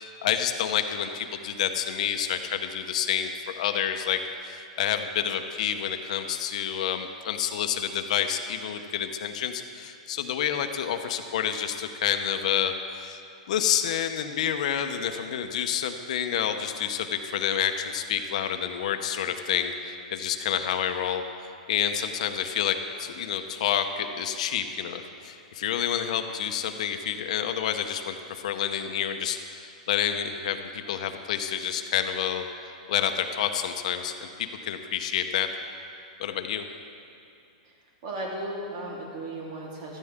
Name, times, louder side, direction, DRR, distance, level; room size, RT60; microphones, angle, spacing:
voice 1, 0.0-4.2 4.4-13.2 13.5-21.2 21.7-28.2 28.4-32.4 32.9-35.5 36.2-36.6, left 9 dB, 65° left, 7 dB, 0.9 m, -29 dB
voice 2, 38.0-40.0, right 1 dB, 50° right, -3 dB, 3.5 m, -35 dB
15.5 x 13.0 x 3.7 m, 2.5 s
hypercardioid pair, 135°, 4 cm